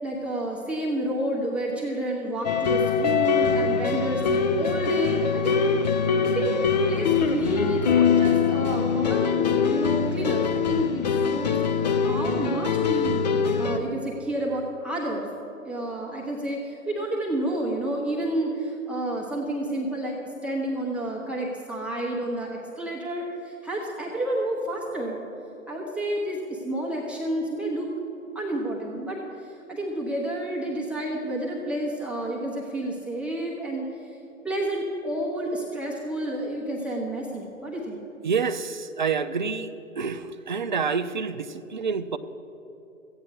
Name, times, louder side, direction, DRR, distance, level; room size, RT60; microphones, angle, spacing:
voice 1, 0.0-5.6 6.2-6.6 6.9-15.3 15.6-20.2 20.4-25.2 25.7-27.9 28.3-34.0 34.4-38.0, right 1 dB, 5° right, -4 dB, 0.9 m, -30 dB
sound 1, 2.4-13.8, left 6 dB, 30° left, 0.6 m, -23 dB
voice 2, 38.2-39.7 40.0-42.2, right 5 dB, 35° right, 11 dB, 0.4 m, -28 dB
14.0 x 8.9 x 6.4 m, 3.0 s
figure-of-eight pair, 130°, 41 cm